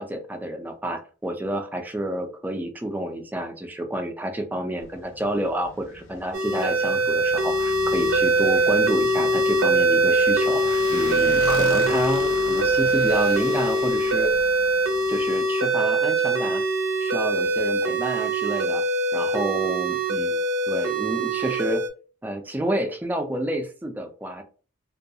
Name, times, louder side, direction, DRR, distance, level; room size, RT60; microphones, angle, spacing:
voice 1, 0.0-14.3 15.1-16.6 17.0-18.8 19.1-20.4 20.7-21.8 22.2-24.4, right 1 dB, 10° right, 5 dB, 0.3 m, -29 dB
Motorcycle, 4.8-15.4, left 3 dB, 70° left, 0.5 m, -39 dB
sound 1, 6.3-21.9, right 2 dB, 85° right, 0.5 m, -22 dB
2.3 x 2.2 x 2.6 m, 0.37 s
head